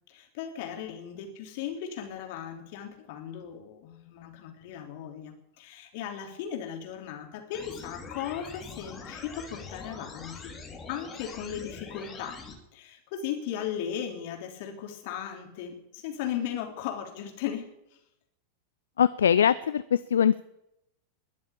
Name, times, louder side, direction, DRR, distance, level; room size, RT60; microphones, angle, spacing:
voice 1, 0.1-10.5 10.9-12.4 12.7-17.6, left 9 dB, 50° left, 3 dB, 3.5 m, -37 dB
sound 1, 7.5-12.5, left 4 dB, 20° left, 2.8 m, -43 dB
voice 2, 19.0-20.4, left 8 dB, 65° left, 15 dB, 0.5 m, -22 dB
21.5 x 7.4 x 8.5 m, 0.82 s
figure-of-eight pair, 90°, 0 cm